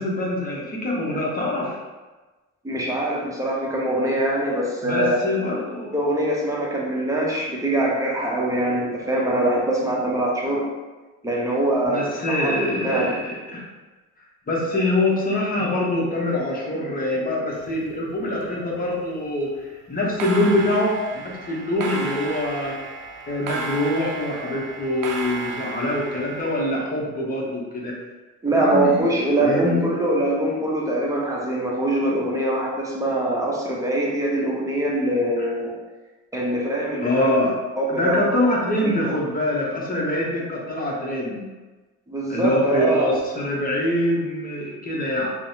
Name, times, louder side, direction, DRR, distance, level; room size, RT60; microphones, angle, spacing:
voice 1, 0.0-1.8 4.8-5.9 11.8-13.7 14.5-22.9 23.3-28.0 28.5-29.1 29.4-29.9 37.0-37.6 37.9-41.5 42.3-45.3, left 1 dB, 30° left, -3 dB, 0.8 m, -24 dB
voice 2, 2.6-5.2 5.9-10.7 11.2-12.5 12.8-13.1 28.4-35.7 36.3-37.3 37.8-38.2 38.8-39.1 42.1-43.1, right 1 dB, 10° right, -3 dB, 0.7 m, -23 dB
sound 1, 17.5-18.4 18.7-19.1 20.0-26.8, right 4 dB, 80° right, 0.5 m, -34 dB
3.2 x 2.0 x 2.7 m, 1.2 s
cardioid pair, 90°, 30 cm